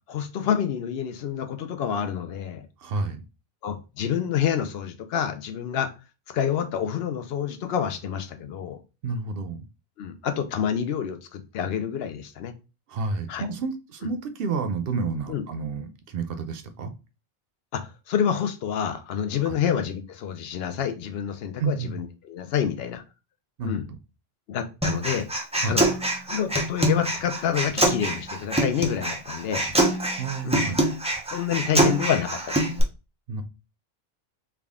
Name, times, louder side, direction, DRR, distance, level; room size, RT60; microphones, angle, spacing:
voice 1, 0.1-2.6 3.6-5.9 6.3-8.8 10.0-12.5 13.3-13.4 15.3-15.4 17.7-23.0 23.6-23.8 24.5-25.3 25.7-25.8 26.3-29.6 30.4-30.7 31.3-32.7, left 8 dB, 75° left, 8 dB, 0.8 m, -28 dB
voice 2, 2.8-3.2 9.0-9.6 12.9-16.9 19.5-19.6 21.6-22.0 23.6-23.8 25.6-25.8 30.2-30.8 31.7-31.8 33.3-33.4, right 4 dB, 70° right, 9 dB, 0.7 m, -30 dB
Human voice, 24.8-32.8, right 1 dB, 10° right, 0.4 m, -24 dB
3.5 x 2.3 x 3.5 m, 0.30 s
omnidirectional pair, 1.0 m